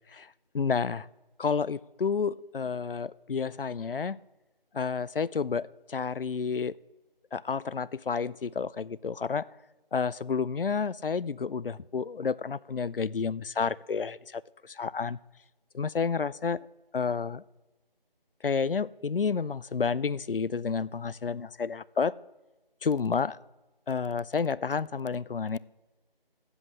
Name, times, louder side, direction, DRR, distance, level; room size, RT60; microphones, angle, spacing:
voice 1, 0.1-1.1 1.4-4.2 4.7-6.8 7.3-9.5 9.9-15.2 15.7-16.7 16.9-17.4 18.4-22.1 22.8-23.4 23.9-25.6, left 5 dB, 70° left, 20 dB, 0.4 m, -30 dB
7.9 x 7.8 x 8.4 m, 1.1 s
figure-of-eight pair, 170°, 29 cm